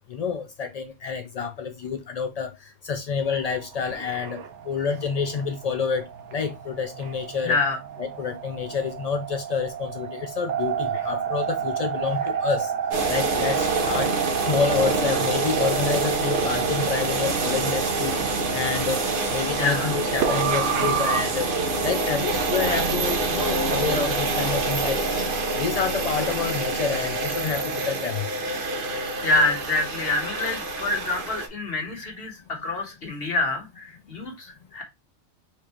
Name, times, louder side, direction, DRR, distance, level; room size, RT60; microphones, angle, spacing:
voice 1, 0.1-7.6 8.0-12.7 13.1-14.1 14.5-18.2 18.5-21.5 21.8-25.1 25.6-28.3, left 6 dB, 75° left, 0.3 m, -28 dB
sound 1, 3.2-21.2, right 7 dB, 75° right, 1.0 m, -31 dB
voice 2, 7.4-7.8 19.6-20.0 28.9-34.8, left 2 dB, 55° left, 1.6 m, -26 dB
sound 2, 12.9-31.5, right 3 dB, 50° right, 1.0 m, -26 dB
4.5 x 2.5 x 4.3 m
omnidirectional pair, 1.2 m